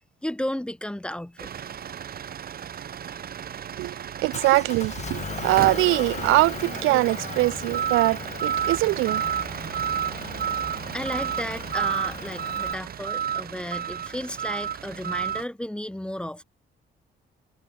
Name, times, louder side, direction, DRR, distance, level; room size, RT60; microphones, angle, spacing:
voice 1, 0.2-1.5 10.9-16.4, left 1 dB, 5° left, 0.6 m, -33 dB
sound 1, 1.4-15.4, right 9 dB, 50° right, 1.0 m, -31 dB
voice 2, 4.2-9.2, right 19 dB, 90° right, 0.4 m, -22 dB
Motor vehicle (road) / Engine, 4.3-12.7, left 5 dB, 35° left, 1.5 m, -38 dB
cardioid pair, 90°, 20 cm